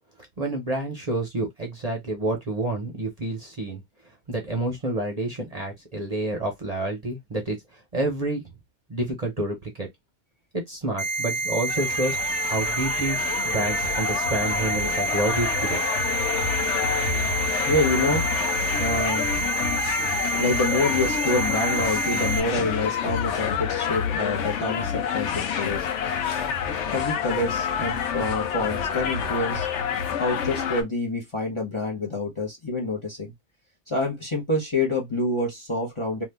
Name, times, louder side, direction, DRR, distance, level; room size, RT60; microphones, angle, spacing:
voice 1, 0.4-3.8 4.3-8.4 8.9-9.9 10.5-12.2 12.4-15.8, right 2 dB, 35° right, 0.8 m, -29 dB
sound 1, 11.0-22.4, right 3 dB, 5° right, 1.1 m, -28 dB
sound 2, 11.7-30.8, left 7 dB, 75° left, 0.9 m, -28 dB
voice 2, 17.7-18.3 18.8-19.3 20.4-25.9 26.2-26.5 26.9-29.7 30.2-33.3 33.9-36.2, left 2 dB, 25° left, 0.9 m, -27 dB
2.7 x 2.5 x 3.4 m
omnidirectional pair, 1.3 m